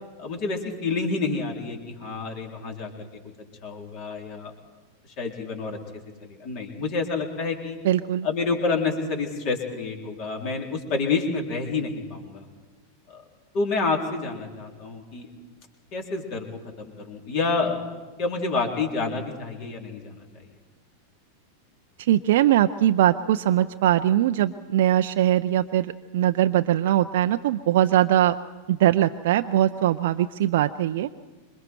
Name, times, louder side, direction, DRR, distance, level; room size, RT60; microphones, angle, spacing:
voice 1, 0.2-3.1 3.6-4.5 5.2-5.8 6.2-7.8 8.2-12.5 13.1-13.2 13.5-15.3 15.9-16.5 16.8-17.8 18.2-20.5, left 4 dB, 40° left, 1 dB, 3.8 m, -28 dB
voice 2, 7.8-8.3 22.0-28.4 28.7-31.1, right 12 dB, 55° right, 8 dB, 0.5 m, -21 dB
26.5 x 23.5 x 4.6 m, 1.3 s
figure-of-eight pair, 90°, 0 cm